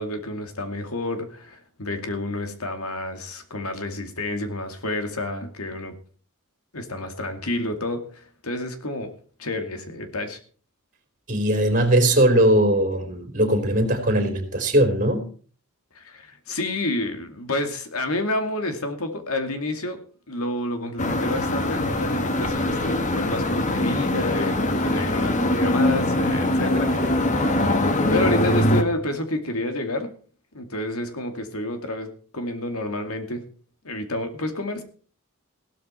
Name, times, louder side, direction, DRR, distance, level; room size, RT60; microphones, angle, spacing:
voice 1, 0.0-5.9 6.7-9.1 9.4-10.4 15.9-20.0 20.3-27.5 28.1-30.1 30.5-33.5 33.8-34.8, left 1 dB, 85° left, 2.3 m, -29 dB
voice 2, 11.3-15.3, right 1 dB, 40° right, 4.1 m, -20 dB
sound 1, 21.0-28.8, left 1 dB, 35° left, 1.7 m, -22 dB
16.5 x 12.5 x 4.4 m
head